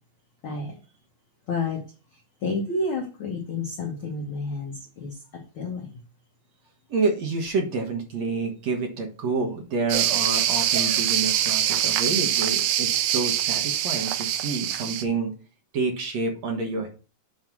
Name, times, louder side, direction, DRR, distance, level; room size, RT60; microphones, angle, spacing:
voice 1, 0.4-0.8 1.5-1.8 2.1-6.0, left 3 dB, 85° left, 0 dB, 1.1 m, -30 dB
voice 2, 6.9-15.3 15.7-16.9, right 4 dB, 60° right, 2 dB, 2.0 m, -28 dB
sound 1, 9.9-15.0, right 11 dB, 85° right, 1.8 m, -24 dB
9.1 x 3.2 x 6.1 m, 0.36 s
omnidirectional pair, 4.2 m